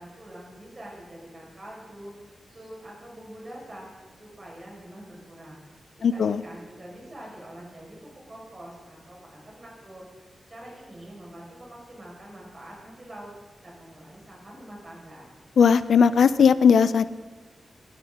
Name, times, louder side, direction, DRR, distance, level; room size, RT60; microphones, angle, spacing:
voice 1, 0.0-3.9 4.2-13.3 13.6-15.4, right 1 dB, 30° right, -4 dB, 4.8 m, -45 dB
voice 2, 6.0-6.4 15.6-17.0, left 6 dB, 75° left, 14 dB, 0.5 m, -18 dB
21.5 x 11.0 x 3.7 m, 1.4 s
wide cardioid pair, 135°, 0 cm